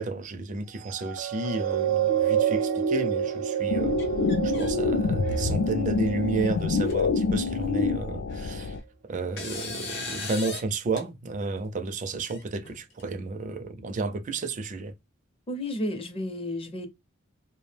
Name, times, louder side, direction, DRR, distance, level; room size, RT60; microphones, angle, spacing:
voice 1, 0.0-4.0 4.4-8.8 9.1-14.9, right 3 dB, 40° right, 0.4 m, -32 dB
sound 1, 0.8-7.5 8.1-8.2, right 8 dB, 80° right, 0.6 m, -29 dB
sound 2, 3.7-8.8, left 4 dB, 80° left, 0.3 m, -26 dB
sound 3, 4.0-4.7 5.1-5.6 6.4-6.5 6.8-6.9 8.3-8.8 9.4-10.7 11.0-11.1 12.2-13.0, left 3 dB, 55° left, 0.8 m, -38 dB
voice 2, 15.5-16.9, left 1 dB, 30° left, 0.5 m, -32 dB
2.4 x 2.1 x 3.2 m
head